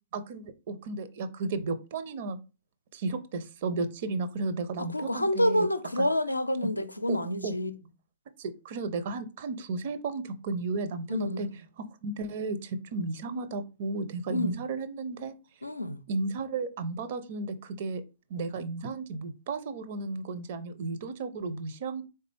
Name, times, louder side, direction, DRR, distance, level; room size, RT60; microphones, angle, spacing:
voice 1, 0.1-2.4 2.9-5.7 6.0-6.1 7.1-7.5 8.4-11.5 11.8-15.3 16.1-18.0 18.3-22.0, right 3 dB, 45° right, 0.5 m, -34 dB
voice 2, 4.8-7.7 11.1-11.4 14.3-14.5 15.6-16.0, left 1 dB, 85° left, 0.4 m, -28 dB
3.8 x 3.2 x 3.3 m
figure-of-eight pair, 110°, 0 cm